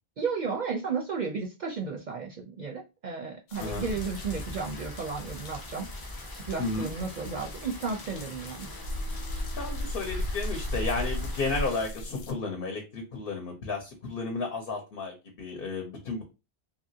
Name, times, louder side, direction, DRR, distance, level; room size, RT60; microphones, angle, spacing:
voice 1, 0.2-5.9 6.3-8.7, right 5 dB, 55° right, 2 dB, 0.5 m, -33 dB
sound 1, 3.5-12.3, left 1 dB, 85° left, 0.9 m, -37 dB
Rain, 3.5-11.9, left 1 dB, 30° left, 0.5 m, -42 dB
voice 2, 3.6-3.9 6.6-6.9 9.6-16.2, left 3 dB, 65° left, 2 dB, 0.8 m, -33 dB
2.8 x 2.5 x 2.7 m, 0.27 s
omnidirectional pair, 1.1 m